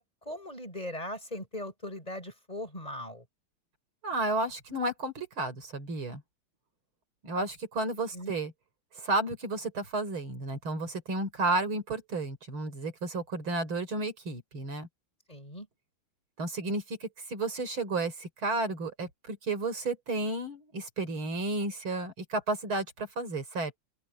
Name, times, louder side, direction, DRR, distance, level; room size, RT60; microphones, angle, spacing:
voice 1, 0.0-3.2 8.1-8.4 15.3-15.7, left 1 dB, 15° left, 7.0 m, -39 dB
voice 2, 4.0-6.2 7.2-8.5 9.0-14.9 16.4-23.8, right 2 dB, 75° right, 5.2 m, -32 dB
open air
omnidirectional pair, 2.3 m